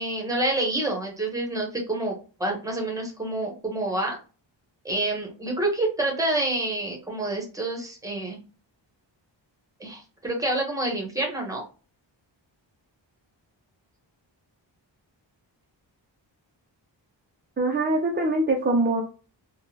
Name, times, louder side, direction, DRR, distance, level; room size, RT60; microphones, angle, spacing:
voice 1, 0.0-4.2 4.8-8.4 9.8-11.6, right 2 dB, 10° right, 1 dB, 0.9 m, -28 dB
voice 2, 17.6-19.0, right 2 dB, 25° right, 1 dB, 0.4 m, -23 dB
3.6 x 2.2 x 2.7 m, 0.34 s
wide cardioid pair, 155°, 45 cm